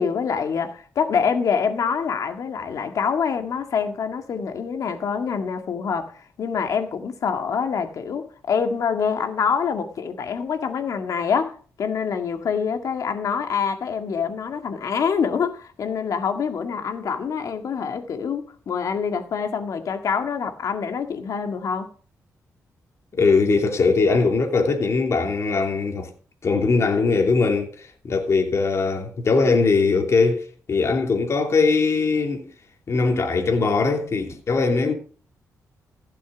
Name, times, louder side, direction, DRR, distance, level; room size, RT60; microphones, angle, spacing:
voice 1, 0.0-21.9, left 6 dB, 70° left, 1.9 m, -25 dB
voice 2, 23.1-26.1 26.4-32.5 32.9-34.9, left 4 dB, 50° left, 2.9 m, -21 dB
15.5 x 6.9 x 5.1 m
cardioid pair, 85°, 6 cm